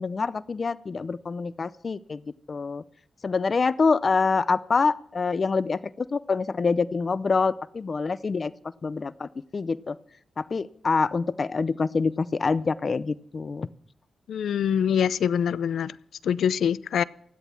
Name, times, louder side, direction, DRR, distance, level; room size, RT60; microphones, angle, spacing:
voice 1, 0.0-2.2 2.5-2.8 3.2-8.5 8.8-10.0 10.4-13.7, left 4 dB, 40° left, 0.6 m, -26 dB
voice 2, 14.3-15.9 16.2-17.0, left 8 dB, 85° left, 0.5 m, -24 dB
16.5 x 11.0 x 5.9 m
wide cardioid pair, 135°, 0 cm